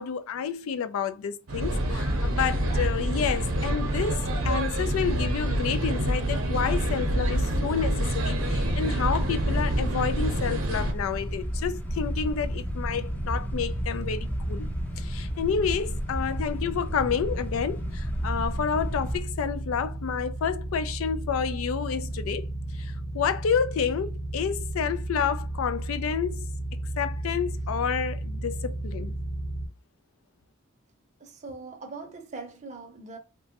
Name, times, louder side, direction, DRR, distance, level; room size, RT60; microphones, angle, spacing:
voice 1, 0.0-14.7 15.0-22.5 22.8-26.5 27.0-29.1, left 7 dB, 85° left, 0.4 m, -29 dB
sound 1, 1.5-10.9, right 1 dB, 80° right, 0.7 m, -27 dB
sound 2, 8.4-19.2, equal, 10° left, 0.4 m, -33 dB
sound 3, 11.8-29.7, right 1 dB, 40° left, 1.0 m, -34 dB
voice 2, 31.2-33.2, right 3 dB, 35° right, 0.6 m, -41 dB
2.9 x 2.2 x 2.8 m
head